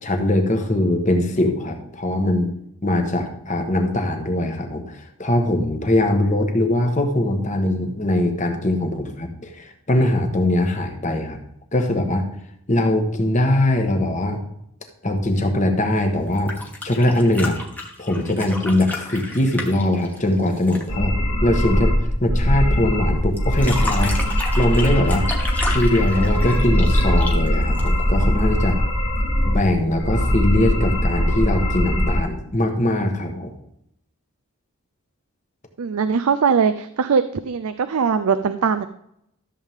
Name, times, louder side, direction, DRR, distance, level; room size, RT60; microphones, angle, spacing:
voice 1, 0.0-2.5 2.8-11.4 11.7-12.3 12.7-14.4 15.0-16.5 16.8-17.6 18.0-22.0 22.2-24.2 24.5-25.3 25.7-28.8 29.4-33.5, left 1 dB, 35° left, 4 dB, 1.3 m, -21 dB
sound 1, 16.3-20.9 23.4-28.2 29.6-29.7, left 2 dB, 10° left, 1.2 m, -32 dB
sound 2, 20.9-32.2, equal, 85° left, 2.5 m, -20 dB
voice 2, 35.8-38.9, right 6 dB, 85° right, 10 dB, 0.5 m, -21 dB
14.0 x 7.4 x 3.6 m, 0.76 s
head